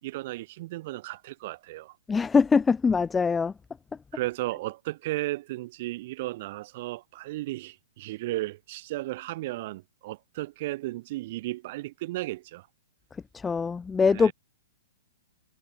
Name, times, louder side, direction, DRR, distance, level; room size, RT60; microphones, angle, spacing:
voice 1, 0.0-2.0 4.1-12.7 14.0-14.3, right 18 dB, 45° right, 2.5 m, -34 dB
voice 2, 2.1-3.5 13.3-14.3, left 5 dB, 10° left, 0.6 m, -23 dB
hypercardioid pair, 155°, 0 cm